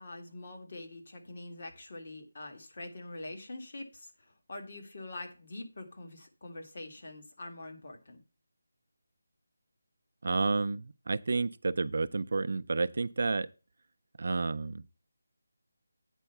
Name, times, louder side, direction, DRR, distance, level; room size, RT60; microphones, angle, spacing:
voice 1, 0.0-8.2, left 2 dB, 45° left, 1.8 m, -45 dB
voice 2, 10.2-13.5 14.2-14.8, right 3 dB, 50° right, 0.4 m, -30 dB
9.0 x 4.5 x 5.7 m
figure-of-eight pair, 175°, 0 cm